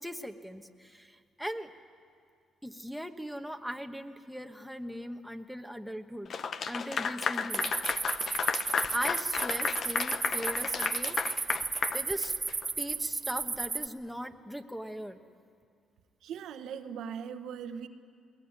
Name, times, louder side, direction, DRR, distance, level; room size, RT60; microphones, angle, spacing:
voice 1, 0.0-1.7 2.6-6.3 6.7-7.7 8.9-11.5 11.9-12.3 12.8-15.2, equal, ahead, 7 dB, 1.3 m, -39 dB
Clapping / Applause, 6.3-12.7, left 6 dB, 55° left, 0.8 m, -33 dB
sound 1, 7.5-13.9, right 4 dB, 30° right, 1.1 m, -34 dB
voice 2, 16.2-17.9, right 7 dB, 80° right, 7 dB, 1.2 m, -39 dB
21.0 x 20.5 x 9.7 m, 2.3 s
cardioid pair, 90°, 0 cm